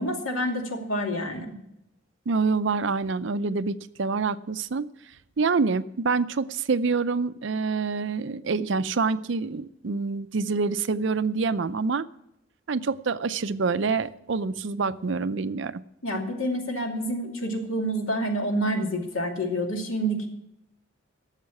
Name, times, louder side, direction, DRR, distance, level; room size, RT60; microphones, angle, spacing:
voice 1, 0.0-1.5 16.0-20.3, equal, 85° left, 2 dB, 2.5 m, -28 dB
voice 2, 2.3-4.9 5.4-12.1 12.7-15.8, right 4 dB, 65° right, 14 dB, 0.5 m, -26 dB
12.5 x 7.3 x 8.3 m, 0.82 s
head